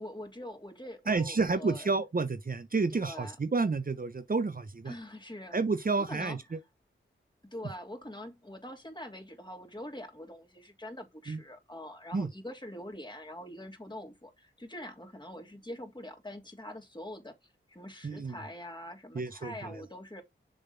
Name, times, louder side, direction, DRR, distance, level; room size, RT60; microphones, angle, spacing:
voice 1, 0.0-1.9 2.9-3.4 4.9-5.6 6.1-6.4 7.4-17.4 17.7-20.2, left 1 dB, 20° left, 2.9 m, -44 dB
voice 2, 1.1-4.9 5.5-6.6 11.3-11.4 12.1-12.3 18.0-18.4 19.1-19.8, right 4 dB, 45° right, 1.0 m, -30 dB
7.0 x 4.0 x 5.2 m
wide cardioid pair, 60°, 21 cm